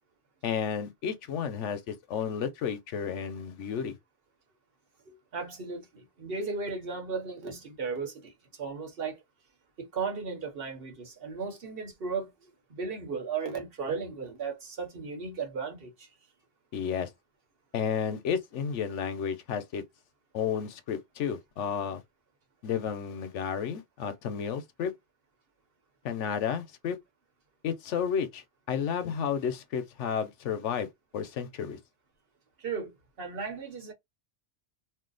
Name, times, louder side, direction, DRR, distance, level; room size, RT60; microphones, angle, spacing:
voice 1, 0.4-4.0 16.7-17.1 17.7-19.8 20.3-22.0 22.6-24.9 26.0-27.0 27.6-30.9 31.1-31.8, left 7 dB, 85° left, 1.0 m, -32 dB
voice 2, 5.1-8.3 8.6-9.2 9.8-12.3 12.7-16.1 32.6-33.9, right 5 dB, 55° right, 1.1 m, -35 dB
2.7 x 2.2 x 3.8 m
omnidirectional pair, 1.2 m